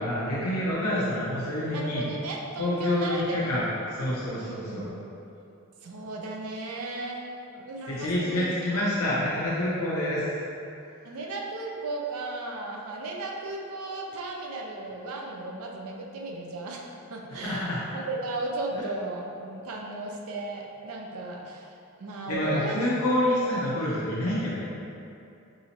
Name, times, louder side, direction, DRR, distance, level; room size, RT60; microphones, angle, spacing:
voice 1, 0.0-2.0 2.6-4.9 7.9-10.2 17.3-17.8 18.7-18.9 22.3-24.6, left 1 dB, 90° left, -7 dB, 0.6 m, -27 dB
voice 2, 1.7-3.7 4.4-5.0 5.8-8.6 11.0-21.7 22.0-23.0 23.3-23.4, right 2 dB, 80° right, 0 dB, 0.4 m, -35 dB
4.1 x 2.7 x 2.8 m, 2.7 s
head